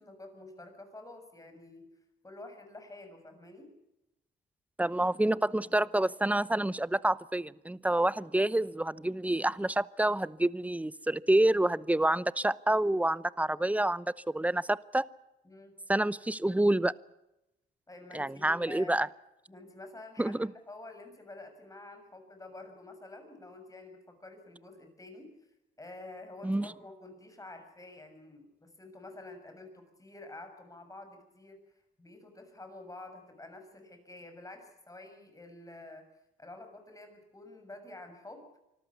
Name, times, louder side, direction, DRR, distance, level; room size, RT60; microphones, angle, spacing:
voice 1, 0.0-1.9 2.2-3.7 15.4-15.7 17.9-19.1 19.5-20.4 20.7-25.3 25.8-31.6 32.0-36.0 36.4-38.5, left 2 dB, 15° left, 6 dB, 6.8 m, -49 dB
voice 2, 4.8-15.1 15.9-16.9 18.1-19.1 20.2-20.5 26.4-26.7, right 1 dB, 5° right, 19 dB, 0.7 m, -28 dB
25.0 x 14.0 x 9.7 m, 0.90 s
cardioid pair, 90°, 20 cm